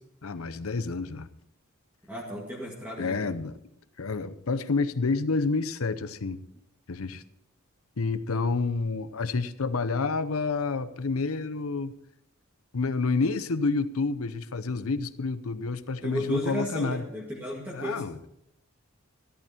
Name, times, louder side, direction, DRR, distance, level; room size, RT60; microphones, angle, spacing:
voice 1, 0.2-1.3 3.0-3.6 4.0-6.4 6.9-7.2 8.0-11.9 12.7-17.1 17.7-18.2, left 4 dB, 85° left, 14 dB, 0.8 m, -29 dB
voice 2, 2.1-3.2 16.0-18.0, left 1 dB, 10° right, -4 dB, 2.0 m, -33 dB
13.5 x 12.5 x 4.4 m, 0.80 s
head